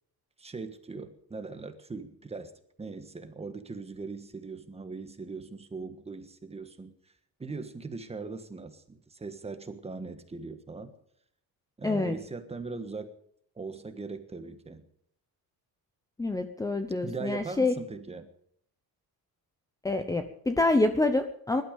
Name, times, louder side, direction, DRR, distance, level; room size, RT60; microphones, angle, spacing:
voice 1, 0.4-2.5 2.8-7.1 7.4-10.9 11.8-13.1 13.5-14.8 17.0-18.3, right 4 dB, 15° right, 9 dB, 1.4 m, -40 dB
voice 2, 11.8-12.2 16.2-17.8 19.8-21.6, left 2 dB, 10° left, 8 dB, 0.8 m, -27 dB
20.5 x 12.5 x 5.3 m, 0.68 s
cardioid pair, 165°, 36 cm